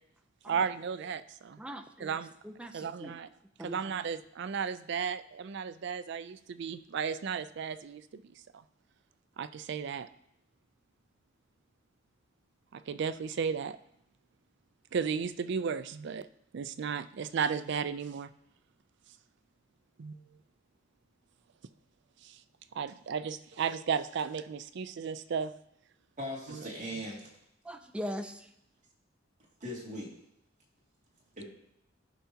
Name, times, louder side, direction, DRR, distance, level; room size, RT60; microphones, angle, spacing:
voice 1, 0.5-1.6 2.0-2.3 2.7-3.3 3.6-8.3 9.4-10.1 12.7-13.8 14.9-16.3 16.5-18.3 20.0-20.2 22.2-22.4 22.7-25.5 26.5-26.6, right 6 dB, 65° right, 13 dB, 0.4 m, -34 dB
voice 2, 1.6-2.2 2.4-3.1 3.6-3.8 27.7-28.4, equal, 5° right, 6 dB, 0.5 m, -40 dB
voice 3, 26.2-27.3 29.6-30.1 31.4-31.5, equal, 40° right, -3 dB, 2.3 m, -39 dB
14.0 x 5.7 x 2.8 m, 0.77 s
head